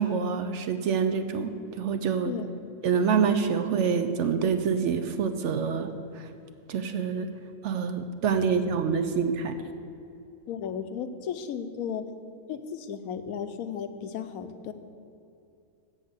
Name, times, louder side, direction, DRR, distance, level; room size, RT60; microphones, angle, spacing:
voice 1, 0.0-2.3 2.8-6.3 6.7-7.3 7.6-9.6, right 6 dB, 65° right, 9 dB, 0.8 m, -26 dB
voice 2, 2.2-2.7 10.5-12.1 12.5-14.7, left 7 dB, 85° left, 10 dB, 1.1 m, -35 dB
7.4 x 7.2 x 8.1 m, 2.7 s
omnidirectional pair, 1.5 m